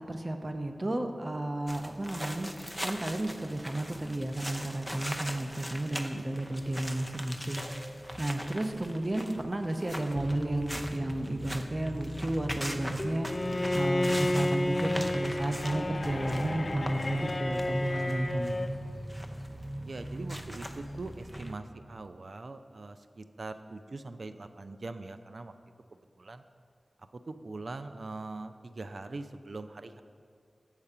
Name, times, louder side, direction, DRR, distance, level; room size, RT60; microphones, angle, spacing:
voice 1, 0.0-2.5 2.8-7.6 8.2-13.3 13.7-18.6, right 1 dB, 40° right, 5 dB, 0.8 m, -32 dB
sound 1, 1.7-21.5, equal, 5° right, 0.6 m, -40 dB
sound 2, 7.6-9.1 10.3-12.4 13.0-15.1 15.8-17.1, left 1 dB, 35° left, 0.9 m, -47 dB
Bowed string instrument, 13.2-18.8, left 1 dB, 55° left, 0.4 m, -31 dB
voice 2, 19.9-25.5 26.2-26.4 27.1-30.0, right 3 dB, 70° right, 9 dB, 0.4 m, -42 dB
7.3 x 4.7 x 6.7 m, 2.3 s
wide cardioid pair, 50°, 0 cm